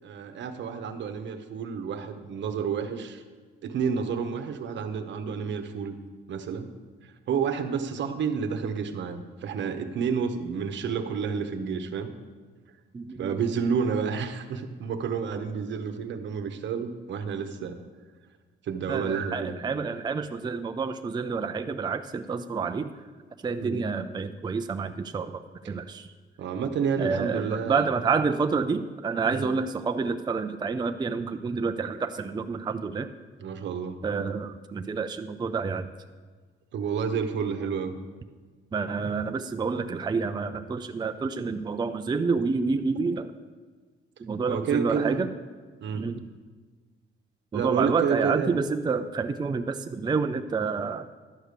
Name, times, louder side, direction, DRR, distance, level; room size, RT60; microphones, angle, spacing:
voice 1, 0.0-3.2 3.6-6.0 6.3-6.7 7.3-12.1 13.2-17.8 18.6-19.5 23.6-23.8 25.6-25.7 26.4-27.9 29.3-29.5 33.4-34.0 36.7-37.9 44.5-45.3 45.8-46.1 47.5-48.6, right 6 dB, 65° right, 8 dB, 1.0 m, -30 dB
voice 2, 12.9-13.3 18.9-22.9 23.4-26.1 27.0-33.1 34.0-35.9 38.7-43.3 44.2-45.3 45.9-46.2 47.5-51.1, right 5 dB, 20° right, 8 dB, 0.4 m, -28 dB
11.5 x 5.0 x 8.2 m, 1.4 s
cardioid pair, 90°, 20 cm